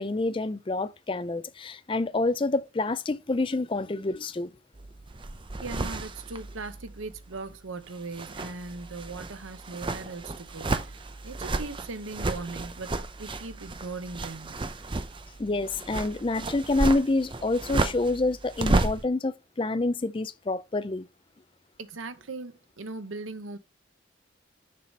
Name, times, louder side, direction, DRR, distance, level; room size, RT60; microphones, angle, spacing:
voice 1, 0.0-4.5 15.4-21.1, left 2 dB, 25° left, 0.4 m, -27 dB
sound 1, 4.8-7.5 7.9-19.1, right 2 dB, 25° right, 0.5 m, -32 dB
voice 2, 5.6-14.6 21.8-23.6, right 3 dB, 90° right, 0.9 m, -39 dB
6.8 x 4.9 x 5.3 m
head